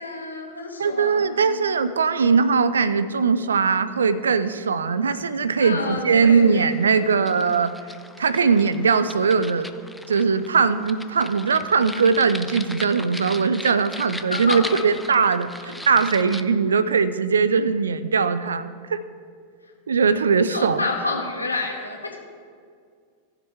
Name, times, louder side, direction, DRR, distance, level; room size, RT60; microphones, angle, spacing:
voice 1, 0.0-1.6 5.6-6.7 14.3-14.9 20.5-22.2, left 3 dB, 80° left, 1 dB, 1.8 m, -29 dB
voice 2, 0.8-7.7 8.2-9.7 10.1-19.0 19.9-20.8, right 5 dB, 70° right, 15 dB, 0.5 m, -20 dB
sound 1, 5.8-16.4, left 1 dB, ahead, 0.5 m, -39 dB
18.5 x 7.4 x 3.5 m, 2.1 s
figure-of-eight pair, 90°, 0 cm